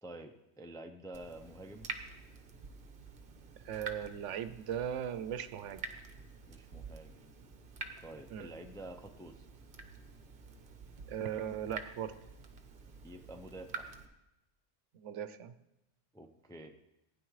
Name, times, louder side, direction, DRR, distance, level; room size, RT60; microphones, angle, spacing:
voice 1, 0.0-1.9 6.5-7.3 8.0-9.5 13.0-13.9 16.1-16.7, right 1 dB, 5° left, 4 dB, 0.4 m, -49 dB
Water tap faucet / Drip, 1.1-14.1, right 4 dB, 50° right, 1.0 m, -48 dB
voice 2, 3.6-5.8 8.3-8.5 11.1-12.1 14.9-15.5, right 9 dB, 80° right, 12 dB, 0.9 m, -38 dB
15.5 x 9.6 x 3.1 m, 0.92 s
omnidirectional pair, 1.2 m